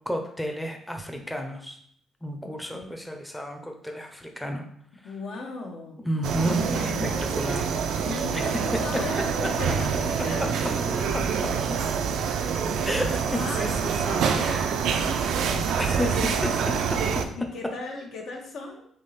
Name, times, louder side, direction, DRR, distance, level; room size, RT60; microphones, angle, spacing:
voice 1, 0.1-1.8 2.2-4.6 6.0-7.6 8.3-8.5 8.7-9.0 9.4-9.5 10.4-10.7 11.1-11.3 11.7-11.8 12.8-14.7 15.8-17.3, equal, 5° left, 3 dB, 0.6 m, -31 dB
voice 2, 2.4-2.9 5.0-6.0 6.5-7.4 8.0-11.1 12.2-13.7 14.0-16.6 17.3-18.9, left 3 dB, 70° left, 0 dB, 1.0 m, -37 dB
sound 1, 6.2-17.3, right 6 dB, 80° right, 0.4 m, -26 dB
3.5 x 3.1 x 4.1 m, 0.64 s
cardioid pair, 90°, 0 cm